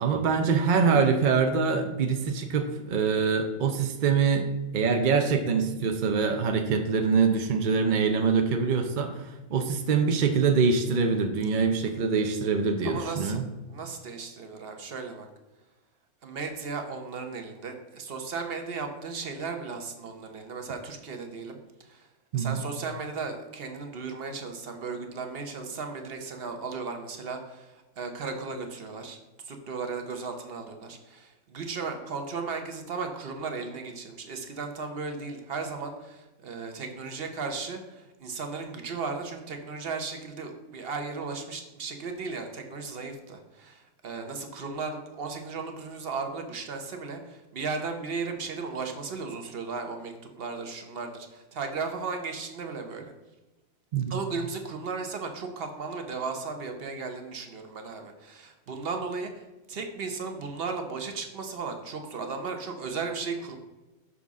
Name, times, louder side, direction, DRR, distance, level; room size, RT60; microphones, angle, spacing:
voice 1, 0.0-4.5 4.7-13.5 22.3-22.6 53.9-54.2, right 5 dB, 65° right, 5 dB, 0.5 m, -24 dB
voice 2, 12.8-13.4 13.7-15.3 16.2-22.1 22.3-29.2 29.4-53.1 54.1-63.6, right 4 dB, 50° right, 5 dB, 0.9 m, -36 dB
6.1 x 5.5 x 3.6 m, 1.1 s
omnidirectional pair, 1.5 m